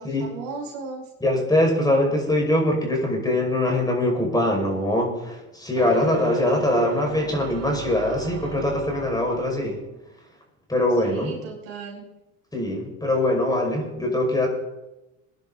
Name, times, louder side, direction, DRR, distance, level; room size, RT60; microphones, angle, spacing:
voice 1, 0.0-1.1 11.0-12.0, right 4 dB, 80° right, -2 dB, 5.3 m, -36 dB
voice 2, 1.2-9.8 10.7-11.3 12.5-14.5, left 1 dB, 10° left, 0 dB, 5.2 m, -22 dB
sound 1, 5.7-9.9, right 7 dB, 40° right, 1.7 m, -35 dB
23.0 x 10.5 x 3.9 m, 0.97 s
hypercardioid pair, 85°, 40 cm